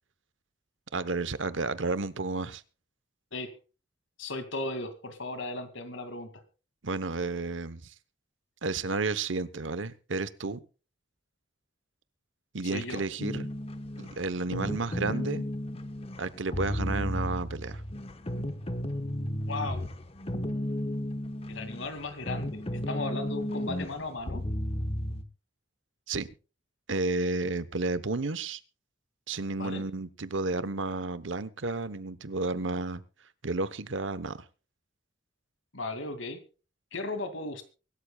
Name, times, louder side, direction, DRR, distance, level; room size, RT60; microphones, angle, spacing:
voice 1, 0.9-2.6 6.8-7.9 8.6-10.6 12.5-13.5 14.0-15.4 16.2-17.8 26.1-26.3 26.9-28.6 29.3-33.0 33.4-34.4, right 3 dB, 80° right, 15 dB, 1.0 m, -32 dB
voice 2, 4.2-6.3 12.6-13.0 19.5-19.9 21.5-24.4 29.6-29.8 35.7-36.4 36.9-37.6, left 2 dB, 85° left, 9 dB, 2.4 m, -36 dB
sound 1, 13.2-25.2, left 1 dB, 30° left, 1.2 m, -34 dB
24.0 x 13.0 x 2.3 m, 0.34 s
head